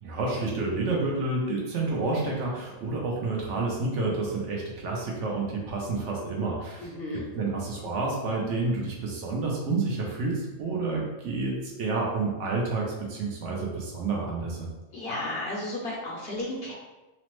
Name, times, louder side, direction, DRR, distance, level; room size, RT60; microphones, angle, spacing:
voice 1, 0.0-6.9 7.4-14.7, right 3 dB, 65° right, -2 dB, 0.9 m, -29 dB
voice 2, 6.8-7.3 14.9-16.7, left 1 dB, 60° left, -4 dB, 0.7 m, -33 dB
3.0 x 2.0 x 3.0 m, 1.1 s
omnidirectional pair, 1.4 m